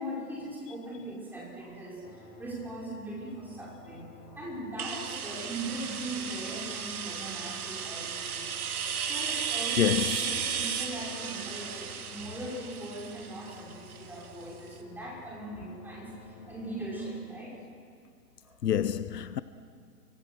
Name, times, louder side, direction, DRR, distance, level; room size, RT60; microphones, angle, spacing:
voice 1, 0.0-8.5 9.0-17.6 18.4-18.6, right 1 dB, 5° right, 5.3 m, -40 dB
sound 1, 2.0-17.1, left 4 dB, 25° left, 3.0 m, -53 dB
sound 2, 4.8-14.4, right 7 dB, 60° right, 2.6 m, -35 dB
voice 2, 9.8-10.4 18.6-19.4, left 9 dB, 70° left, 1.0 m, -27 dB
29.5 x 24.5 x 6.2 m
hypercardioid pair, 155°, 49 cm